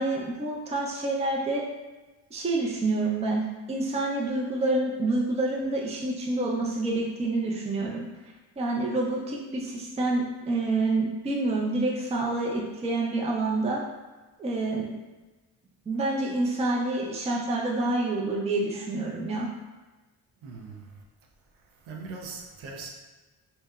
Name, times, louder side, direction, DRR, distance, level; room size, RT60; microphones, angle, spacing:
voice 1, 0.0-1.6 2.3-3.4 3.7-8.1 8.6-13.8 14.4-14.9 15.9-19.5, right 2 dB, 15° right, 0.3 m, -27 dB
voice 2, 20.4-21.0 21.5-22.9, right 4 dB, 80° right, 0.6 m, -41 dB
2.8 x 2.1 x 2.2 m
cardioid pair, 90°, 46 cm